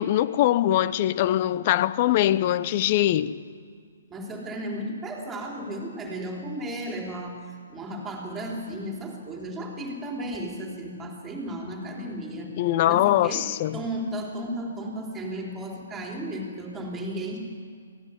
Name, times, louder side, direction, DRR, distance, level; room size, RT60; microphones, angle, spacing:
voice 1, 0.0-3.4 12.6-13.8, left 13 dB, 40° left, 0.8 m, -22 dB
voice 2, 4.1-12.6 12.9-17.4, right 1 dB, 15° right, 3.7 m, -34 dB
22.5 x 16.5 x 8.3 m
figure-of-eight pair, 130°, 0 cm